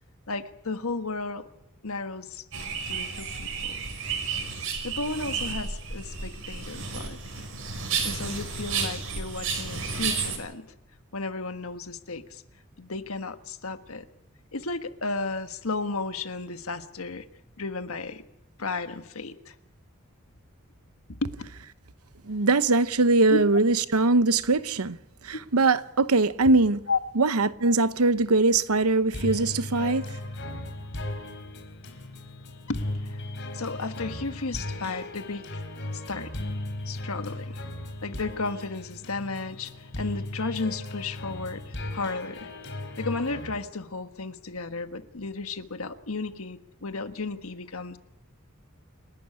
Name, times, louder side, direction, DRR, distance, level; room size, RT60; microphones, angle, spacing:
voice 1, 0.3-1.5 1.8-2.4 2.9-3.7 4.8-7.4 8.0-10.7 11.1-12.4 12.8-14.1 14.5-17.2 17.6-18.2 18.6-19.5 21.1-21.3 23.3-23.4 26.9-27.0 32.7-32.8 33.1-33.2 33.5-35.6 35.9-36.3 36.9-37.6 38.0-42.5 43.0-48.0, left 3 dB, 75° left, 1.5 m, -33 dB
sound 1, 2.5-10.4, right 5 dB, 70° right, 5.5 m, -32 dB
voice 2, 22.3-25.0 25.2-26.8 27.2-30.1, right 3 dB, 90° right, 0.9 m, -22 dB
sound 2, 29.1-43.5, left 1 dB, 55° left, 4.2 m, -36 dB
29.0 x 12.0 x 9.9 m
head